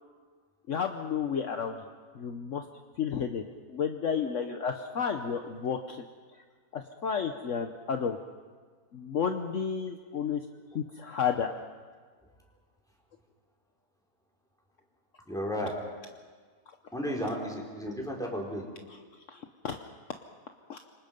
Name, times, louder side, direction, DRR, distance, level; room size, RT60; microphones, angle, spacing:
voice 1, 0.7-1.8 2.1-2.6 3.0-3.4 3.7-6.1 6.7-8.2 8.9-10.4 10.7-11.5 18.9-19.0 19.3-19.8 20.7-20.8, left 7 dB, 60° left, 5 dB, 1.3 m, -31 dB
voice 2, 15.3-15.7 16.9-18.7, equal, ahead, -2 dB, 4.4 m, -33 dB
27.0 x 24.0 x 5.3 m, 1.5 s
omnidirectional pair, 1.6 m